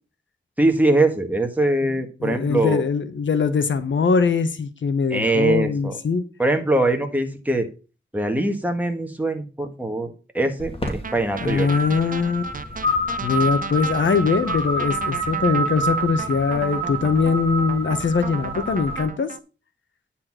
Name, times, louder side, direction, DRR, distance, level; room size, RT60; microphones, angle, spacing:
voice 1, 0.6-2.8 5.1-5.9 6.4-7.7 8.1-11.7, right 2 dB, 10° right, 4 dB, 1.6 m, -22 dB
voice 2, 2.2-6.2 11.4-12.5 13.2-19.3, left 5 dB, 75° left, 11 dB, 1.0 m, -22 dB
sound 1, 10.6-19.1, right 2 dB, 30° left, 2.3 m, -28 dB
sound 2, 10.8-19.4, right 5 dB, 45° right, 0.5 m, -36 dB
9.8 x 4.2 x 6.1 m, 0.34 s
wide cardioid pair, 75°, 20 cm